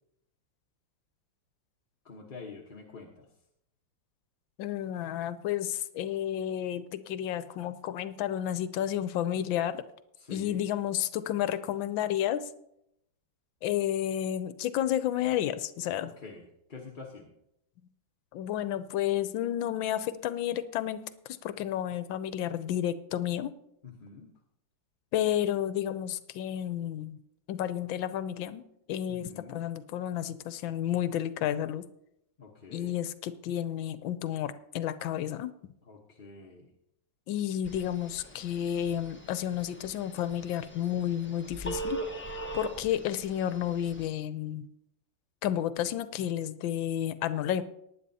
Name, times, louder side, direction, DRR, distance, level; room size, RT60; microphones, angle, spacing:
voice 1, 2.0-3.3 10.2-10.6 16.0-17.3 23.8-24.3 29.1-29.6 32.4-33.0 35.8-36.7, left 4 dB, 35° left, -2 dB, 0.9 m, -47 dB
voice 2, 4.6-9.8 10.3-12.5 13.6-16.1 18.3-21.0 21.4-23.5 25.1-27.2 27.5-28.6 28.9-31.9 32.7-35.5 37.3-42.0 42.3-44.7 45.4-47.6, left 11 dB, 80° left, 13 dB, 1.4 m, -31 dB
Telephone, 37.6-44.0, right 2 dB, 10° left, 0.6 m, -41 dB
19.0 x 9.7 x 2.8 m, 0.79 s
omnidirectional pair, 2.2 m